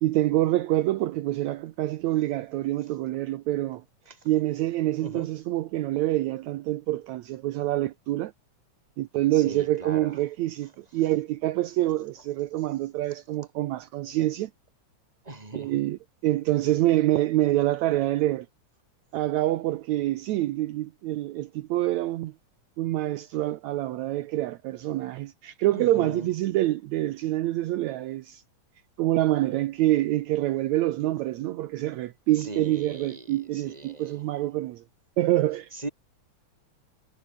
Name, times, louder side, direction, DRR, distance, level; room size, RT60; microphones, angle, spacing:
voice 1, 0.0-8.3 9.0-14.5 15.5-18.5 19.1-22.3 22.8-28.4 29.0-34.8 35.2-35.7, right 15 dB, 75° right, 2.0 m, -26 dB
voice 2, 9.4-10.1 15.3-15.7 25.7-26.3 32.4-33.2 33.5-34.2 35.8-35.9, right 2 dB, 10° right, 3.6 m, -38 dB
omnidirectional pair, 3.5 m